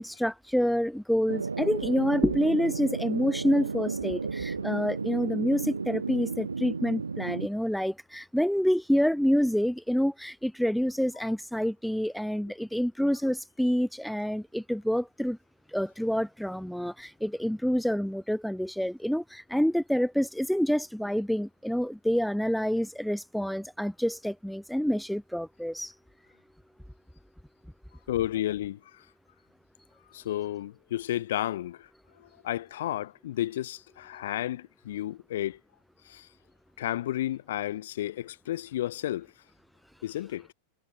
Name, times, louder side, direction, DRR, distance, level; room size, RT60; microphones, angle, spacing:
voice 1, 0.0-15.4 15.7-25.9, equal, ahead, 0.4 m, -27 dB
sound 1, 1.3-7.5, right 4 dB, 75° right, 0.5 m, -33 dB
voice 2, 28.1-29.0 30.1-31.9 32.2-35.6 36.0-36.3 36.8-39.3 40.0-40.5, left 13 dB, 60° left, 1.4 m, -32 dB
figure-of-eight pair, 90°, 0 cm